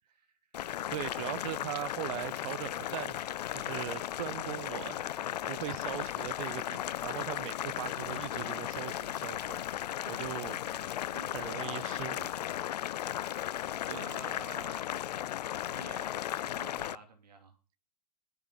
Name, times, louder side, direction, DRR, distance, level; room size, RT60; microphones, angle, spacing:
voice 1, 0.0-0.8 10.3-10.8 11.1-11.3 13.9-14.9 15.6-16.1 16.4-17.6, right 4 dB, 85° right, 2.9 m, -51 dB
Boiling, 0.5-16.9, left 12 dB, 80° left, 0.5 m, -36 dB
voice 2, 0.9-5.0 5.5-9.6 10.1-10.6 11.3-12.3 13.9-14.1, right 16 dB, 55° right, 0.6 m, -40 dB
Harmonica, 3.6-11.5, right 7 dB, 35° right, 2.0 m, -65 dB
10.5 x 7.1 x 7.7 m
hypercardioid pair, 115°, 20 cm